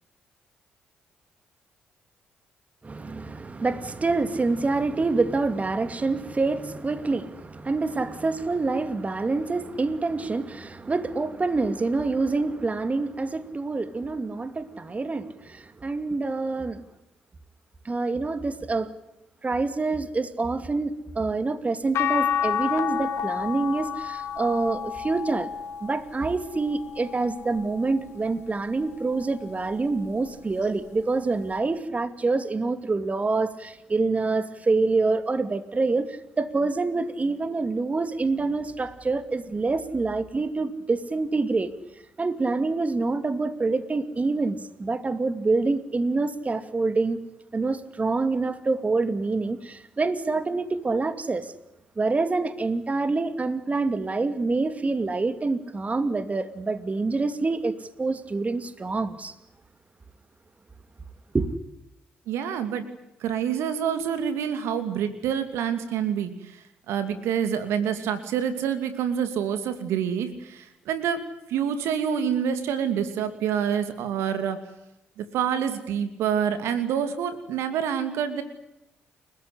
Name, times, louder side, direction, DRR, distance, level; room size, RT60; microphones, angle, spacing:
voice 1, 2.8-16.8 17.8-18.9 19.4-25.5 25.8-41.7 42.2-47.2 47.5-51.5 52.0-59.3 61.3-61.5, right 3 dB, 30° right, 2.5 m, -26 dB
sound 1, 21.9-28.2 28.8-30.2 31.6-31.7, left 8 dB, 65° left, 2.7 m, -31 dB
voice 2, 62.3-62.9 63.2-66.6 66.9-74.6 75.2-78.4, right 8 dB, 70° right, 2.6 m, -27 dB
30.0 x 15.5 x 9.9 m
hypercardioid pair, 45°, 5 cm